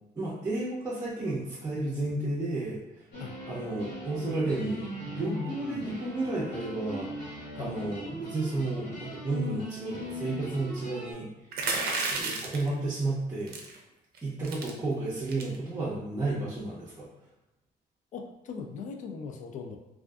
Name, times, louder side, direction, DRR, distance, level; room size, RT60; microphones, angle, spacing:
voice 1, 0.2-3.1 3.5-11.3 12.1-13.6 14.2-17.1, right 2 dB, 20° right, -7 dB, 0.5 m, -32 dB
sound 1, 3.1-11.1, left 1 dB, 65° left, 1.0 m, -39 dB
sound 2, 11.5-12.7 13.5-13.8 14.1-14.2 14.4-14.7 15.3-15.6, right 3 dB, 65° right, 0.5 m, -31 dB
voice 2, 18.1-19.8, left 5 dB, 50° left, 4 dB, 0.4 m, -39 dB
2.5 x 2.3 x 2.3 m, 0.95 s
cardioid pair, 110°, 17 cm